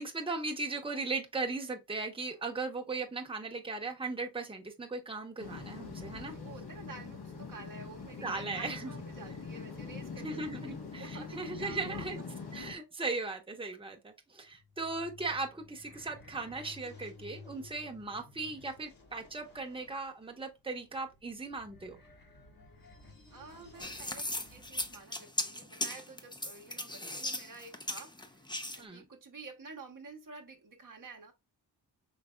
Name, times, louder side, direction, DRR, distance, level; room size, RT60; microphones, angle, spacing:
voice 1, 0.0-6.4 8.2-8.9 10.2-12.2 12.5-22.0 28.8-29.0, right 3 dB, 15° right, 1.0 m, -38 dB
sound 1, 5.4-12.7, left 5 dB, 70° left, 1.5 m, -43 dB
voice 2, 6.1-12.1 23.3-28.4 28.7-31.3, right 3 dB, 50° right, 1.0 m, -50 dB
sound 2, 14.5-25.0, left 3 dB, 55° left, 1.7 m, -55 dB
sound 3, 23.8-28.8, left 1 dB, 10° left, 0.7 m, -37 dB
5.1 x 3.3 x 2.3 m
cardioid pair, 60°, 41 cm